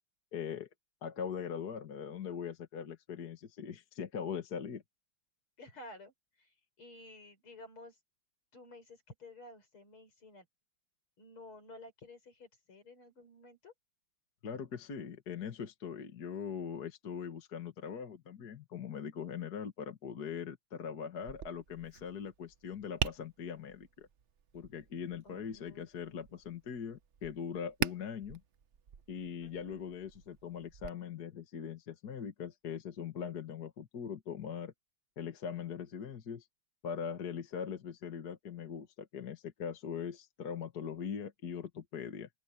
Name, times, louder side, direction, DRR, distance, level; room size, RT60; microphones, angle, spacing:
voice 1, 0.3-0.7 1.0-4.8 14.4-24.1 24.5-28.4 29.1-34.7 35.2-36.5 36.8-42.3, left 7 dB, 50° left, 2.1 m, -41 dB
voice 2, 5.6-8.0 8.5-10.5 11.2-13.7 25.2-26.4 29.4-29.8, left 2 dB, 80° left, 6.4 m, -53 dB
Tap, 21.2-30.9, right 8 dB, 55° right, 0.8 m, -43 dB
open air
omnidirectional pair, 2.3 m